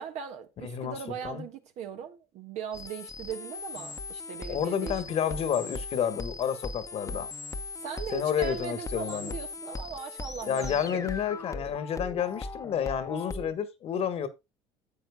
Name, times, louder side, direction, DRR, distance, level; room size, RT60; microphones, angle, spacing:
voice 1, 0.0-5.0 5.3-5.4 7.8-11.1, right 7 dB, 60° right, 1.5 m, -39 dB
voice 2, 0.6-1.0 1.2-1.4 4.5-7.3 8.1-9.3 10.5-14.3, left 8 dB, 50° left, 1.5 m, -30 dB
sound 1, 2.7-13.5, left 3 dB, 25° left, 1.0 m, -39 dB
11.0 x 7.6 x 2.2 m
hypercardioid pair, 75°, 13 cm